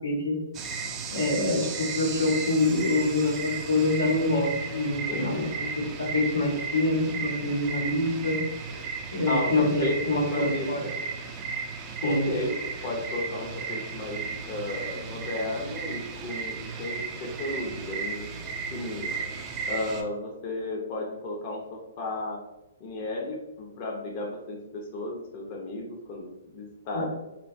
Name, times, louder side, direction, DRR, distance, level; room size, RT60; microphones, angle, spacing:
voice 1, 0.0-0.4 1.1-5.5 5.8-8.4 9.1-10.8 12.0-12.3 26.9-27.0, left 2 dB, 85° left, -2 dB, 0.8 m, -26 dB
sound 1, 0.5-20.0, right 5 dB, 25° right, 0.3 m, -35 dB
voice 2, 9.3-10.9 12.0-12.6 12.8-18.3 18.7-19.2 19.6-22.4 22.8-27.0, left 2 dB, 40° left, -1 dB, 0.5 m, -33 dB
2.6 x 2.2 x 2.5 m, 0.97 s
hypercardioid pair, 130°, 0 cm